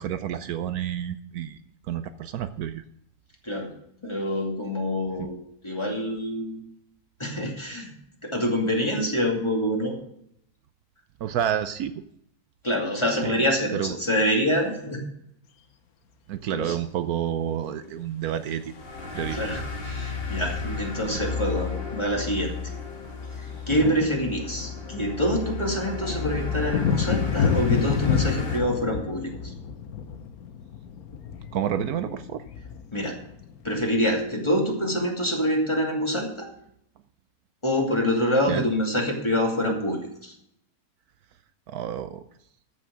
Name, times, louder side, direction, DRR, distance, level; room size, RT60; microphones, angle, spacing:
voice 1, 0.0-1.6 1.9-2.8 11.2-11.9 13.1-13.4 13.7-14.0 16.3-18.7 19.1-19.4 31.5-32.4 38.5-38.6 41.7-42.2, right 10 dB, 75° right, 11 dB, 1.1 m, -29 dB
voice 2, 4.0-5.4 5.6-6.6 7.2-7.9 8.2-10.0 12.6-15.0 16.5-16.8 17.8-17.9 19.2-22.5 23.4-29.5 32.9-33.2 33.6-36.5 37.6-40.4, equal, 15° left, 0 dB, 2.5 m, -26 dB
sound 1, 18.5-20.1 21.4-21.5 21.7-21.9 22.2-34.3, left 7 dB, 70° left, 1.4 m, -30 dB
sound 2, 18.7-28.6, left 5 dB, 40° left, 2.0 m, -33 dB
14.0 x 6.4 x 6.2 m, 0.73 s
omnidirectional pair, 1.7 m